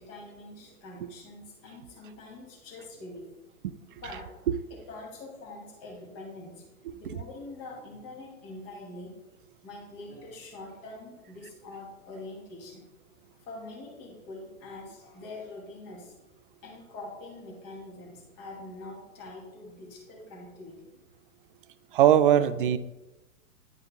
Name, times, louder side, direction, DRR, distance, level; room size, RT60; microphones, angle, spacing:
voice 1, 0.0-3.3 3.9-4.3 4.9-6.6 6.9-9.1 9.6-12.8 13.4-16.2 16.6-20.9, left 2 dB, 30° left, -2 dB, 2.5 m, -44 dB
voice 2, 6.9-7.2 21.9-22.8, right 10 dB, 40° right, 15 dB, 0.4 m, -21 dB
10.5 x 5.2 x 3.8 m, 1.0 s
figure-of-eight pair, 110°, 45 cm